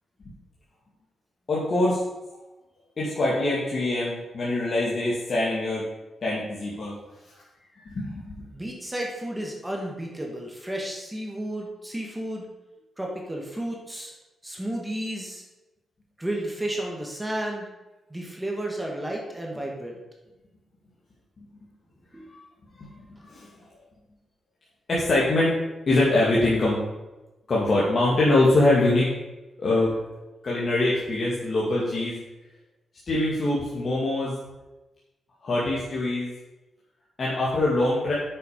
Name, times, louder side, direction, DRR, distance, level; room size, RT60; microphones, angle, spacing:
voice 1, 1.5-2.0 2.3-2.4 3.0-5.9 6.2-7.0 7.8-8.4 22.3-22.4 22.7-23.5 24.9-25.5 25.9-26.8 27.5-29.1 29.6-29.9 30.4-32.1 33.1-34.4 35.4-36.3 37.2-38.1, left 2 dB, 40° left, -6 dB, 2.2 m, -23 dB
voice 2, 8.5-12.5 13.0-14.1 14.4-15.4 16.2-17.7 18.1-20.0 22.1-22.3, right 1 dB, 10° right, -1 dB, 1.7 m, -32 dB
8.7 x 6.9 x 5.2 m, 1.1 s
cardioid pair, 125°, 0 cm